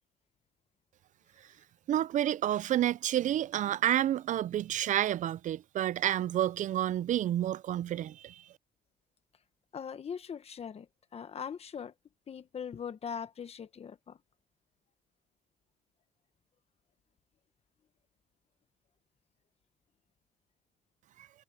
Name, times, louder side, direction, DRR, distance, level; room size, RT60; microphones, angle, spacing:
voice 1, 1.9-8.4, right 12 dB, 50° right, 0.4 m, -29 dB
voice 2, 9.7-11.9 12.3-14.2, left 7 dB, 35° left, 1.3 m, -41 dB
cardioid pair, 110°, 17 cm